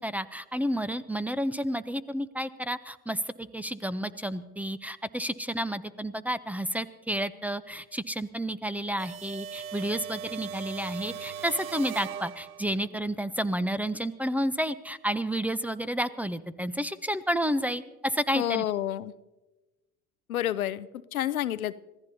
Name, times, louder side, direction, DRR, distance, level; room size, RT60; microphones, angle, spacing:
voice 1, 0.0-18.6, equal, 5° right, 16 dB, 0.7 m, -31 dB
sound 1, 9.0-12.9, right 7 dB, 80° right, 0.7 m, -39 dB
voice 2, 18.3-19.1 20.3-21.7, left 12 dB, 90° left, 17 dB, 0.6 m, -29 dB
26.0 x 16.0 x 2.8 m, 1.1 s
hypercardioid pair, 75°, 41 cm